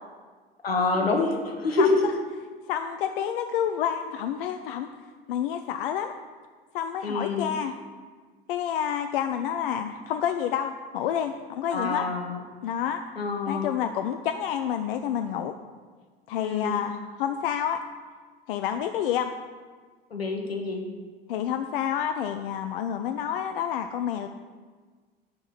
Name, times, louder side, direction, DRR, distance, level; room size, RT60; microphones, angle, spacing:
voice 1, 0.6-2.0 7.0-7.5 11.7-12.4 13.2-13.7 16.4-16.8 20.1-20.9, left 3 dB, 85° left, 3 dB, 1.0 m, -26 dB
voice 2, 2.7-4.9 5.3-6.1 6.7-7.7 8.5-12.0 12.6-13.0 13.5-15.6 16.3-17.8 18.5-19.3 21.3-24.3, left 9 dB, 65° left, 7 dB, 0.4 m, -29 dB
7.9 x 5.4 x 4.4 m, 1.5 s
figure-of-eight pair, 65°, 30 cm